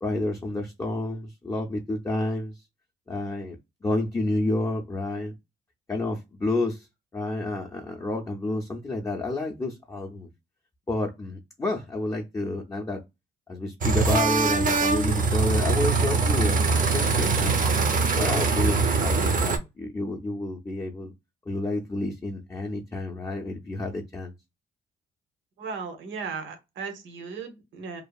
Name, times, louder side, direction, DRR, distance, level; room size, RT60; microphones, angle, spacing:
voice 1, 0.0-2.5 3.1-3.6 3.8-5.3 5.9-6.9 7.1-10.3 10.9-13.0 13.5-17.6 18.1-21.1 21.5-24.3, left 2 dB, 15° left, 0.5 m, -30 dB
sound 1, 13.8-19.6, right 4 dB, 45° right, 0.6 m, -23 dB
voice 2, 25.6-28.0, right 5 dB, 70° right, 0.8 m, -36 dB
2.7 x 2.4 x 2.2 m
cardioid pair, 90°, 20 cm